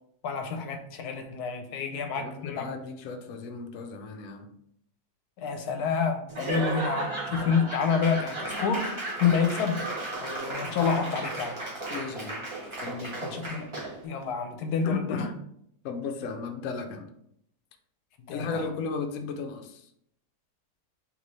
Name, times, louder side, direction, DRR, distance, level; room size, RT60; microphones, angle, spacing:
voice 1, 0.2-2.7 5.4-8.9 9.2-9.8 10.2-11.6 13.2-13.7 14.0-15.2 18.3-18.6, left 6 dB, 80° left, 5 dB, 1.1 m, -28 dB
voice 2, 2.1-4.5 11.9-12.5 12.8-13.2 14.8-15.3 15.8-17.1 18.3-19.9, left 4 dB, 65° left, 4 dB, 0.9 m, -35 dB
Laughter / Applause / Crowd, 6.3-14.1, right 2 dB, 25° right, 0.7 m, -34 dB
3.3 x 3.1 x 4.0 m, 0.72 s
omnidirectional pair, 1.7 m